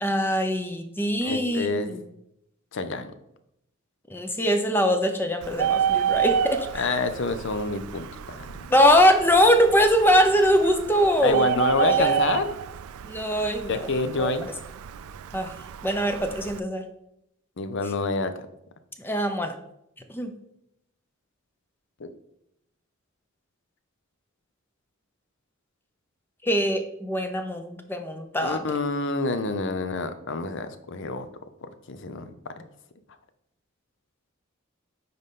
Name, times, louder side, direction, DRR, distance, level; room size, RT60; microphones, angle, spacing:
voice 1, 0.0-2.0 4.1-6.9 8.7-11.4 11.8-12.2 13.1-13.7 14.2-14.3 15.3-15.5 15.8-16.8 19.0-19.5 20.1-20.3 26.4-28.6, equal, 10° left, 6 dB, 0.6 m, -22 dB
voice 2, 1.2-2.0 2.7-3.1 6.7-8.4 11.2-12.6 13.7-14.5 17.6-18.5 22.0-22.1 28.4-31.3 31.6-32.7, left 3 dB, 60° left, 10 dB, 0.6 m, -28 dB
Bird, 5.4-16.6, right 8 dB, 90° right, 0.4 m, -29 dB
9.5 x 3.9 x 3.7 m, 0.79 s
head